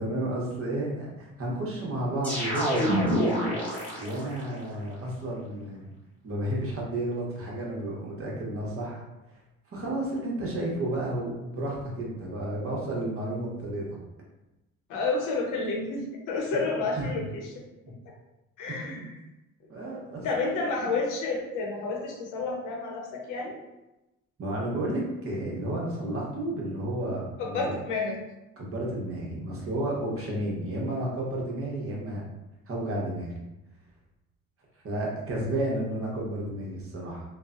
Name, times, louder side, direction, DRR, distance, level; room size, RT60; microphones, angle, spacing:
voice 1, 0.0-3.5 4.0-5.9 6.2-9.0 9.7-14.0 16.5-16.6 17.0-17.1 18.7-19.1 19.7-20.9 24.4-27.7 28.6-32.2 32.7-33.3 34.8-37.2, right 1 dB, 45° right, -3 dB, 0.9 m, -32 dB
sound 1, 2.2-4.5, equal, 5° left, 1.0 m, -27 dB
voice 2, 14.9-17.5 18.6-19.0 20.2-23.6 27.4-28.2, left 3 dB, 90° left, -1 dB, 0.7 m, -30 dB
3.1 x 2.1 x 2.4 m, 0.98 s
cardioid pair, 90°, 30 cm